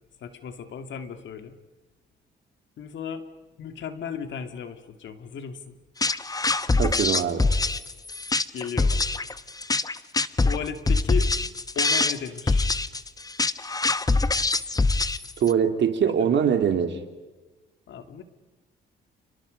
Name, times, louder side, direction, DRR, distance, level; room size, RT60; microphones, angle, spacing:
voice 1, 0.2-1.5 2.8-3.3 3.6-5.8 8.5-9.0 10.4-11.3 11.8-12.7 16.0-16.4 17.9-18.2, left 7 dB, 70° left, 8 dB, 2.4 m, -35 dB
sound 1, 6.0-15.5, left 3 dB, 20° left, 1.0 m, -24 dB
voice 2, 6.8-7.4 15.4-17.0, right 8 dB, 65° right, 7 dB, 2.9 m, -22 dB
29.5 x 29.5 x 5.3 m, 1.2 s
cardioid pair, 90°, 20 cm